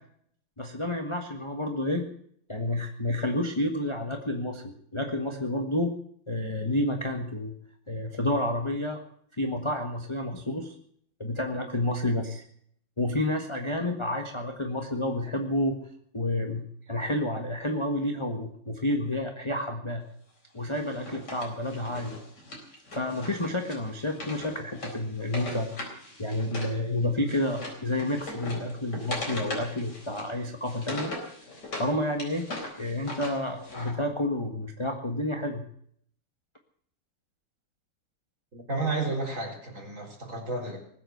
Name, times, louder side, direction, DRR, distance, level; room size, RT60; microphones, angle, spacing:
voice 1, 0.6-2.1 2.5-5.9 6.3-7.5 7.9-9.0 9.4-10.7 11.2-12.5 13.0-15.8 16.1-20.0 20.5-22.1 22.9-25.7 26.2-31.1 31.8-32.5 32.8-35.6, left 1 dB, 15° left, 3 dB, 1.3 m, -30 dB
Wood, 20.7-26.8 27.0-31.9 32.2-33.9, left 1 dB, 50° left, 4.8 m, -39 dB
voice 2, 38.5-40.8, right 3 dB, 35° right, 1 dB, 4.3 m, -32 dB
20.0 x 8.3 x 8.0 m, 0.65 s
omnidirectional pair, 2.3 m